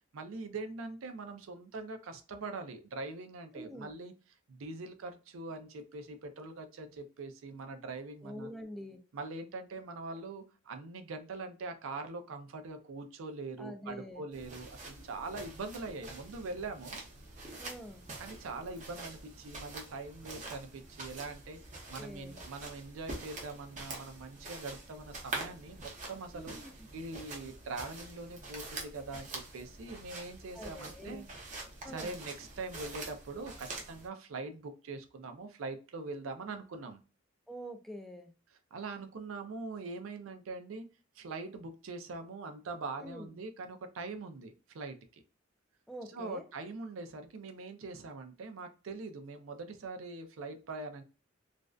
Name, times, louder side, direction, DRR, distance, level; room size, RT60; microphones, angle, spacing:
voice 1, 0.1-4.1 4.5-8.5 9.1-17.0 18.2-21.6 21.9-26.6 26.9-31.2 31.9-37.0 38.7-40.9 41.2-45.2 46.1-51.0, right 3 dB, 90° right, 0.4 m, -43 dB
voice 2, 3.5-3.9 8.2-9.0 13.6-14.2 17.6-18.0 22.0-22.4 26.3-26.9 30.5-31.3 31.8-32.2 37.5-38.3 43.0-43.4 45.9-46.5, equal, ahead, 0.3 m, -45 dB
sound 1, 14.3-34.1, right 2 dB, 40° right, 0.7 m, -46 dB
2.5 x 2.1 x 2.3 m
head